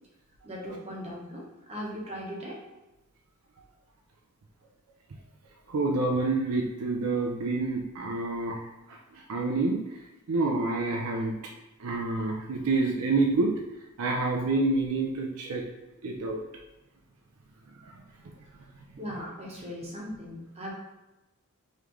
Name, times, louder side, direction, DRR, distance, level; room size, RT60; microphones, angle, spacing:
voice 1, 0.4-2.6 19.0-20.7, equal, 30° right, -4 dB, 1.0 m, -38 dB
voice 2, 5.7-8.6 9.1-9.8 10.3-11.3 11.8-13.5 14.0-15.6 16.0-16.4, right 3 dB, 70° right, 0 dB, 0.5 m, -27 dB
3.6 x 3.2 x 3.0 m, 1.0 s
head